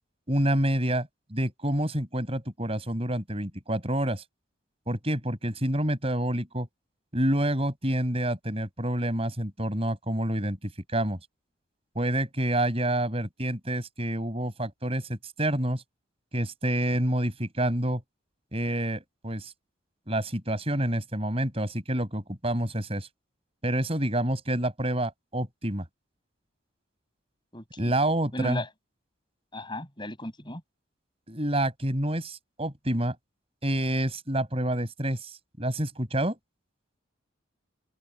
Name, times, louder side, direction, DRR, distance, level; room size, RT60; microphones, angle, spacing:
voice 1, 0.3-4.2 4.9-6.7 7.1-11.2 11.9-15.8 16.3-18.0 18.5-19.5 20.1-23.1 23.6-25.8 27.8-28.6 31.3-33.1 33.6-36.4, right 1 dB, 30° right, 6.8 m, -28 dB
voice 2, 27.5-27.9 28.3-28.7 29.5-30.6, left 1 dB, 25° left, 6.5 m, -35 dB
head